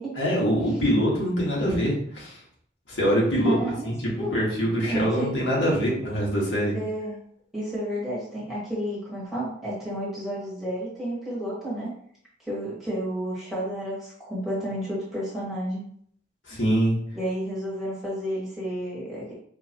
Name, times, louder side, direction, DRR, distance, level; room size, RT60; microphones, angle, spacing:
voice 1, 0.2-2.4 2.9-6.7 16.5-16.9, equal, 70° left, -5 dB, 1.7 m, -24 dB
voice 2, 3.4-4.3 4.9-5.3 6.7-7.1 7.5-11.9 12.4-15.8 17.1-19.3, equal, ahead, -8 dB, 1.8 m, -31 dB
4.7 x 3.0 x 3.0 m, 0.62 s
head